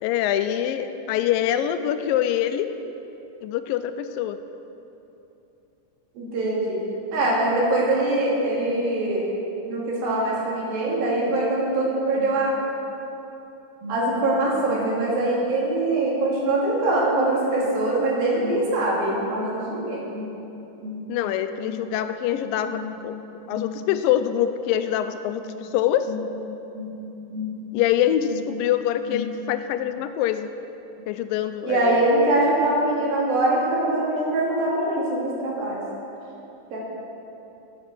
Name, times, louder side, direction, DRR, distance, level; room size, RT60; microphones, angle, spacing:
voice 1, 0.0-2.7 3.4-4.4 21.1-23.1 23.5-26.1 27.7-30.5 31.1-32.1, left 10 dB, 85° left, 10 dB, 2.2 m, -24 dB
voice 2, 6.2-9.3 9.7-12.6 13.8-20.3 20.8-21.0 21.6-21.8 22.7-22.9 23.5-23.7 26.1-26.2 26.7-26.9 27.3-27.6 28.3-28.4 29.1-29.3 31.6-35.8 36.7-36.8, right 1 dB, 90° right, -5 dB, 4.3 m, -23 dB
15.0 x 7.7 x 6.2 m, 3.0 s
omnidirectional pair, 4.1 m